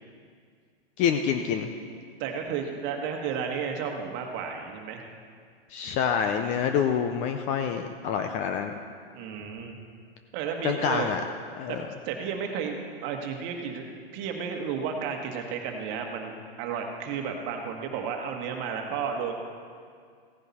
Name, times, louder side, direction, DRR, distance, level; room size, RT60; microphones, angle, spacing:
voice 1, 1.0-1.7 5.7-8.7 10.6-11.2 11.6-11.9, left 7 dB, 25° left, 6 dB, 0.4 m, -27 dB
voice 2, 2.2-5.1 9.1-9.7 10.3-11.1 11.7-11.8 12.0-19.3, right 6 dB, 35° right, 3 dB, 1.6 m, -32 dB
16.0 x 10.0 x 4.2 m, 2.1 s
hypercardioid pair, 135°, 30 cm